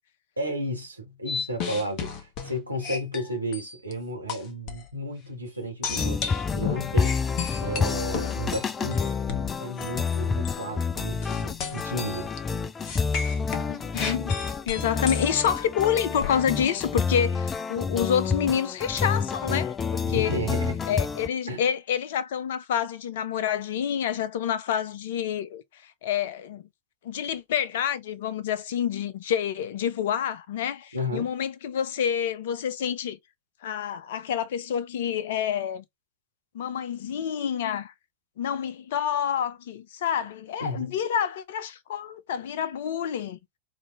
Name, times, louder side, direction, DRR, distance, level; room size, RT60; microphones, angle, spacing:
voice 1, 0.4-9.1 9.6-12.3 20.1-20.8 21.5-21.6 30.9-31.3 40.6-41.0, equal, 85° right, 1.8 m, -33 dB
sound 1, 1.3-3.9 4.3-4.9 5.8-10.2 10.5-10.7 11.2-12.4 12.8-16.5, left 6 dB, 40° left, 1.1 m, -34 dB
sound 2, 5.9-21.3, left 5 dB, 20° left, 0.4 m, -29 dB
voice 2, 13.7-14.3 14.7-20.4 20.9-26.6 27.0-33.2 33.6-35.8 36.5-37.9 38.4-43.4, left 8 dB, 55° left, 0.7 m, -28 dB
5.1 x 2.8 x 3.3 m
figure-of-eight pair, 90°, 0 cm